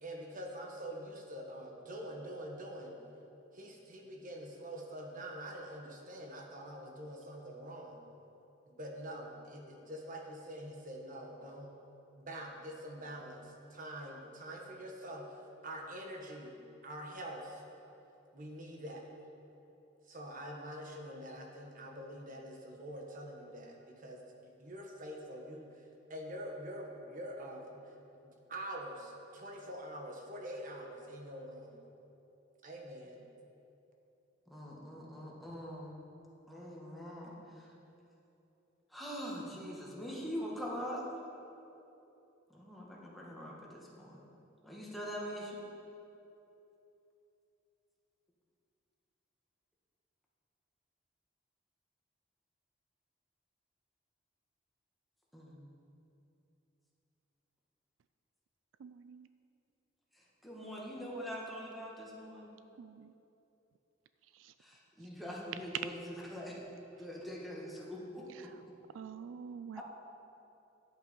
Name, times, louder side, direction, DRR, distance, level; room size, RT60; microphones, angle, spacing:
voice 1, 0.0-3.0 3.5-8.0 8.7-11.7 12.2-17.6 18.3-19.0 20.1-24.2 24.6-27.9 28.2-31.8 32.6-33.2, right 1 dB, 45° right, 1 dB, 1.3 m, -45 dB
voice 2, 34.5-36.0 36.5-37.7 38.9-41.0 42.5-44.2 44.6-45.6 55.3-55.6 60.1-62.5 64.6-65.9 66.3-66.6 67.0-68.5 69.7-69.8, equal, ahead, -4 dB, 1.7 m, -43 dB
voice 3, 58.8-59.3 62.8-63.1 64.3-64.5 68.3-68.6 68.9-69.8, right 6 dB, 75° right, 12 dB, 0.3 m, -48 dB
11.0 x 8.0 x 5.4 m, 2.9 s
head